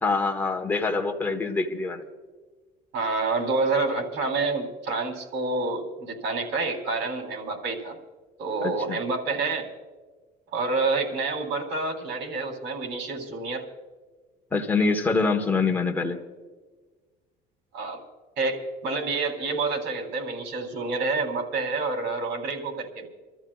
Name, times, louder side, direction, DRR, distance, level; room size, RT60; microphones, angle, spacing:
voice 1, 0.0-2.0 8.6-9.0 14.5-16.2, left 4 dB, 10° left, 2 dB, 1.2 m, -25 dB
voice 2, 2.9-8.0 8.4-9.7 10.5-13.6 17.7-18.0 18.4-23.1, right 3 dB, 70° right, 1 dB, 3.6 m, -28 dB
29.5 x 13.5 x 2.4 m, 1.4 s
cardioid pair, 145°, 18 cm